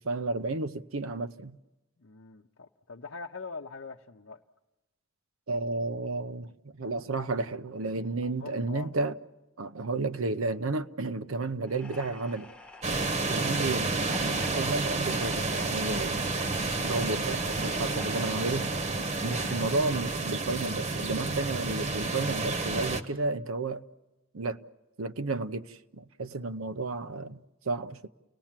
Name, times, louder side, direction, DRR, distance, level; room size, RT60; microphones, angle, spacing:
voice 1, 0.0-1.6 5.5-9.2 9.6-12.5 13.3-16.2 16.8-18.7 19.2-23.8 24.3-24.6 25.0-28.1, right 3 dB, 90° right, 0.8 m, -32 dB
voice 2, 2.0-4.4 8.2-8.9 12.8-13.1 13.6-13.8 16.8-17.1, left 4 dB, 65° left, 0.7 m, -43 dB
sound 1, 11.7-20.6, left 2 dB, 5° left, 0.9 m, -48 dB
sound 2, 12.8-23.0, right 3 dB, 35° right, 1.1 m, -30 dB
30.0 x 19.0 x 7.4 m
head